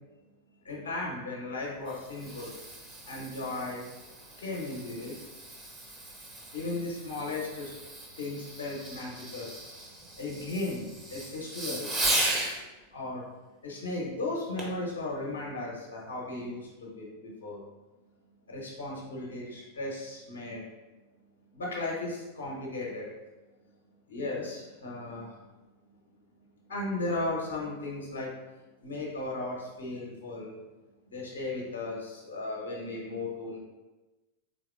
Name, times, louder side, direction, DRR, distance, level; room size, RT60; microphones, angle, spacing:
voice 1, 0.6-2.5 3.1-3.8 4.4-5.1 6.5-7.7 8.2-9.5 10.2-11.9 12.9-13.2 13.6-17.6 18.5-20.7 21.5-23.1 24.1-25.4 26.7-28.3 28.8-30.6 31.1-33.6, left 2 dB, 65° left, -3 dB, 0.8 m, -36 dB
Fireworks, 1.6-12.6 14.6-14.9 15.4-15.5, right 1 dB, 20° right, 0.8 m, -36 dB
4.1 x 3.4 x 2.4 m, 1.1 s
figure-of-eight pair, 90°, 0 cm